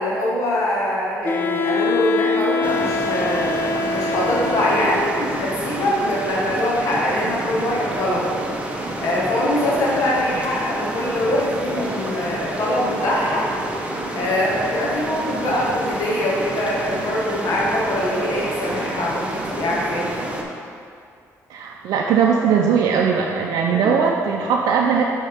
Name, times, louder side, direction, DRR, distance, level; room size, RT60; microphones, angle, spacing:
voice 1, 0.0-8.4 9.0-13.4 13.7-20.2 23.7-23.9, left 1 dB, 60° left, -5 dB, 1.3 m, -23 dB
Wind instrument woodwind instrument, 1.2-5.4, left 3 dB, 35° left, 0.5 m, -24 dB
sound 1, 2.6-20.4, right 1 dB, 20° right, 0.8 m, -29 dB
voice 2, 21.5-25.0, right 6 dB, 80° right, 0 dB, 0.4 m, -19 dB
10.0 x 3.6 x 3.5 m, 2.4 s
cardioid pair, 95°, 6 cm